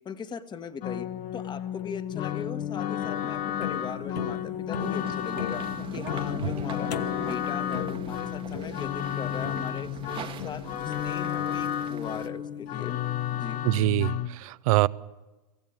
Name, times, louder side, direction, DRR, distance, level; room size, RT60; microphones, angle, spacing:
voice 1, 0.0-1.1 1.3-6.9 7.3-13.0 13.3-13.6, left 6 dB, 20° left, 11 dB, 1.3 m, -39 dB
sound 1, 0.8-14.3, left 10 dB, 40° left, 1.1 m, -32 dB
sound 2, 1.8-13.0, left 8 dB, 80° left, 1.0 m, -40 dB
sound 3, 4.8-12.3, right 8 dB, 25° right, 1.1 m, -42 dB
voice 2, 13.6-14.9, right 18 dB, 60° right, 20 dB, 0.6 m, -24 dB
24.0 x 15.5 x 8.7 m, 1.2 s
hypercardioid pair, 115°, 21 cm